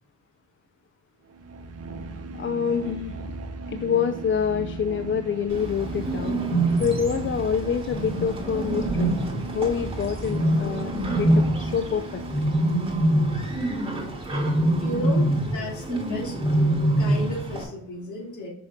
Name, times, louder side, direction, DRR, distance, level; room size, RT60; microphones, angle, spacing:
sound 1, 1.3-12.9, right 3 dB, 50° right, 0.9 m, -37 dB
voice 1, 2.4-3.2 3.7-6.4 6.8-9.2 9.5-10.9 11.2-12.2, left 7 dB, 40° left, 9 dB, 0.5 m, -26 dB
Bird, 5.5-17.6, right 1 dB, 15° right, 2.8 m, -25 dB
voice 2, 14.8-16.3 17.0-18.5, left 1 dB, 65° left, -3 dB, 2.9 m, -33 dB
6.2 x 6.0 x 3.7 m, 0.73 s
cardioid pair, 75°, 31 cm